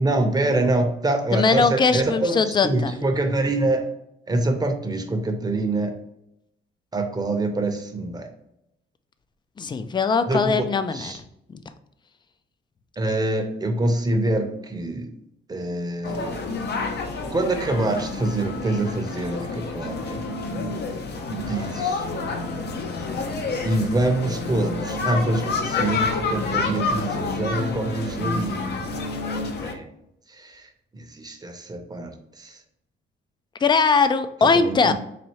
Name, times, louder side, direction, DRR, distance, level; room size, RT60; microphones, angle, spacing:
voice 1, 0.0-3.9 4.3-5.9 6.9-8.3 10.3-10.6 10.9-11.2 13.0-15.1 15.5-16.4 17.3-20.2 21.3-22.1 23.6-28.7 29.6-29.9 30.3-30.7 30.9-32.6 34.5-34.9, right 2 dB, 20° right, 5 dB, 0.7 m, -25 dB
voice 2, 1.3-2.9 9.6-11.1 33.6-34.9, left 4 dB, 25° left, 11 dB, 0.3 m, -20 dB
sound 1, 16.0-29.7, left 3 dB, 60° left, 0.7 m, -28 dB
4.2 x 2.7 x 3.0 m, 0.79 s
cardioid pair, 90°, 20 cm